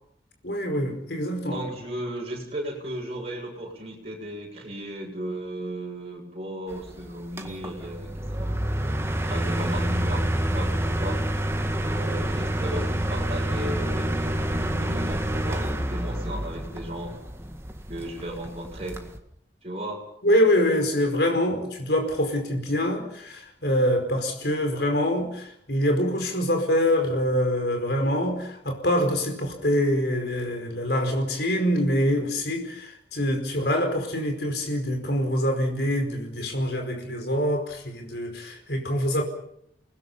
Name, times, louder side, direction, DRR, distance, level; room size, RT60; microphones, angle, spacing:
voice 1, 0.4-1.6 20.2-39.2, equal, 60° left, 4.9 m, -25 dB
voice 2, 1.5-11.2 11.8-17.1 17.9-19.0 19.6-20.0, right 1 dB, 35° right, 7.1 m, -35 dB
sound 1, 6.7-19.2, right 1 dB, 15° right, 1.8 m, -28 dB
29.5 x 20.0 x 5.6 m
head